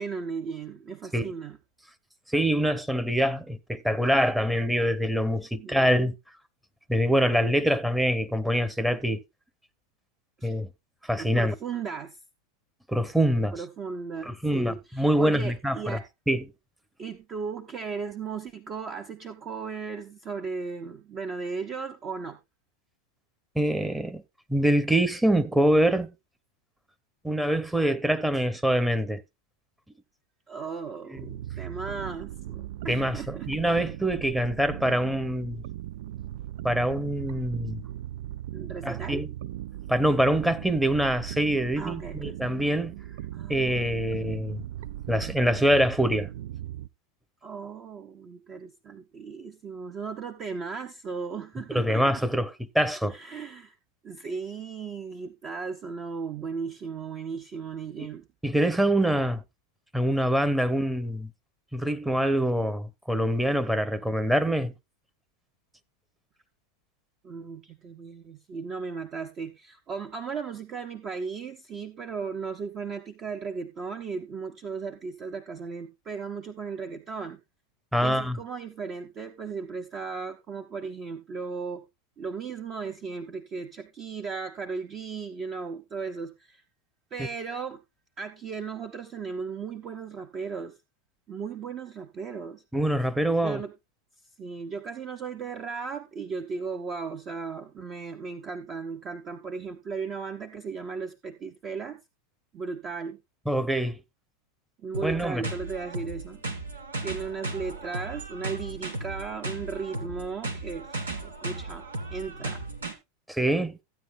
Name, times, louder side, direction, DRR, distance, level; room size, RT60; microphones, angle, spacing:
voice 1, 0.0-1.6 5.6-6.1 10.4-10.5 11.2-12.2 13.5-16.1 17.0-22.4 30.5-33.5 38.5-39.2 41.8-42.7 43.3-44.5 47.4-52.2 53.0-53.7 54.0-58.2 67.2-77.4 78.0-81.8 82.2-86.6 87.1-87.8 88.2-90.8 91.3-92.6 93.4-93.7 94.4-102.0 102.5-103.2 104.8-106.4 107.0-112.6, right 5 dB, 35° right, 1.1 m, -36 dB
voice 2, 2.3-6.1 6.9-9.2 10.4-10.7 11.1-11.5 12.9-13.5 14.3-16.0 16.3-16.4 23.5-24.2 24.5-26.1 27.2-29.2 31.1-31.3 32.9-35.6 36.6-37.8 38.8-39.3 39.9-43.0 43.5-44.6 45.1-46.3 51.7-53.2 58.0-58.1 58.4-59.4 59.9-61.3 61.7-64.7 77.9-78.4 92.7-93.6 103.5-104.0 105.0-105.5 113.3-113.8, equal, 5° right, 1.0 m, -25 dB
sound 1, 31.2-46.9, right 13 dB, 65° right, 0.4 m, -38 dB
sound 2, 104.9-112.9, right 2 dB, 85° right, 1.9 m, -36 dB
15.0 x 9.3 x 2.2 m
hypercardioid pair, 95°, 0 cm